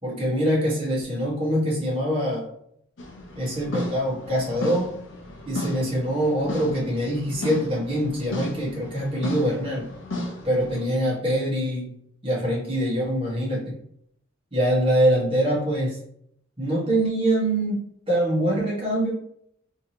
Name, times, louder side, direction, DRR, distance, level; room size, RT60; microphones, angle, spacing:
voice 1, 0.0-2.5 3.4-4.9 5.4-9.9 10.4-11.9 12.2-13.7 14.5-16.0 16.6-19.1, right 1 dB, 30° right, -6 dB, 1.4 m, -24 dB
sound 1, 3.0-10.8, left 1 dB, 85° left, 0.7 m, -34 dB
3.6 x 2.9 x 2.8 m, 0.70 s
head